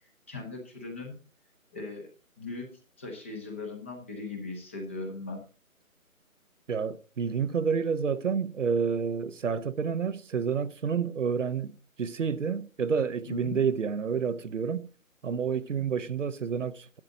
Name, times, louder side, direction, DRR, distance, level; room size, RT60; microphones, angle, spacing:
voice 1, 0.3-1.1 1.7-2.1 2.4-2.7 3.0-5.4 13.3-13.6, left 3 dB, 10° left, 0.8 m, -38 dB
voice 2, 6.7-14.9 15.2-17.0, right 6 dB, 60° right, 0.8 m, -29 dB
12.0 x 11.5 x 4.0 m
figure-of-eight pair, 160°, 42 cm